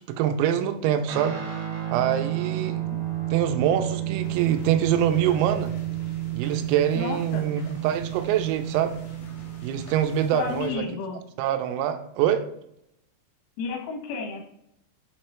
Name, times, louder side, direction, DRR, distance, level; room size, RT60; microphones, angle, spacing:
voice 1, 0.1-1.4 1.9-2.8 3.3-5.7 6.3-9.0 9.6-10.8 11.4-12.4, right 10 dB, 85° right, 8 dB, 3.3 m, -24 dB
Guitar, 1.1-9.9, right 14 dB, 65° right, 3.4 m, -31 dB
Bowed string instrument, 2.5-7.5, left 2 dB, 35° left, 1.0 m, -47 dB
sound 1, 4.2-10.7, left 1 dB, 65° left, 2.5 m, -46 dB
voice 2, 7.0-7.5 10.3-11.2 13.6-14.4, left 4 dB, 90° left, 2 dB, 4.2 m, -32 dB
8.7 x 3.2 x 4.4 m, 0.76 s
omnidirectional pair, 6.0 m